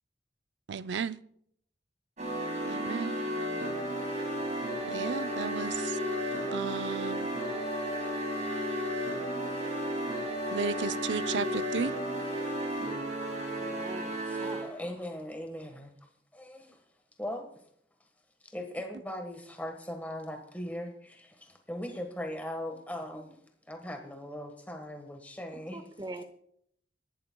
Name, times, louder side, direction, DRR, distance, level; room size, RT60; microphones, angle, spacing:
voice 1, 0.7-1.2 2.7-3.2 4.9-6.0 6.5-7.3 10.5-11.9, right 5 dB, 75° right, 0.5 m, -34 dB
sound 1, 2.2-14.8, equal, 40° right, 5.5 m, -33 dB
voice 2, 13.6-14.7 25.5-26.2, right 2 dB, 25° right, 0.9 m, -43 dB
voice 3, 14.3-16.0 16.3-16.8 17.2-17.5 18.4-23.4 23.7-25.8, left 1 dB, 10° left, 1.4 m, -39 dB
27.5 x 11.5 x 2.3 m
head